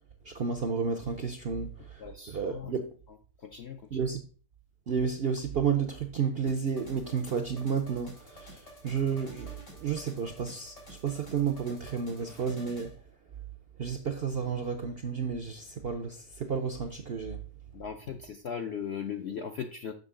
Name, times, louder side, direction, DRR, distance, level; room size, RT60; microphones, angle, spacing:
voice 1, 0.2-2.9 3.9-4.2 4.9-12.9 13.8-17.4, right 6 dB, 65° right, 0.6 m, -32 dB
voice 2, 2.0-2.7 3.4-4.0 17.7-19.9, left 7 dB, 65° left, 0.6 m, -38 dB
sound 1, 6.5-12.9, left 1 dB, 85° left, 4.4 m, -51 dB
6.6 x 6.1 x 3.7 m
omnidirectional pair, 1.8 m